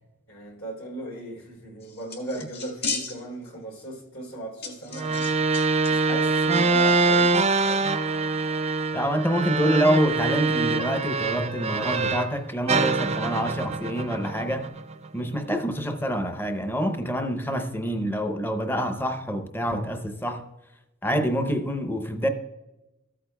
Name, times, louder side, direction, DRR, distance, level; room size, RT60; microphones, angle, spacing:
voice 1, 0.3-5.3 5.9-7.9, right 1 dB, 75° left, 3.6 m, -37 dB
sound 1, 1.8-3.5 3.8-3.9 4.6-5.9 6.2-6.3, left 4 dB, 55° left, 2.0 m, -34 dB
sound 2, 4.9-12.3 12.7-15.1, right 3 dB, 30° right, 0.4 m, -24 dB
voice 2, 8.9-14.7 15.1-20.4 21.0-22.3, equal, 10° left, 0.6 m, -26 dB
14.0 x 8.4 x 2.2 m
head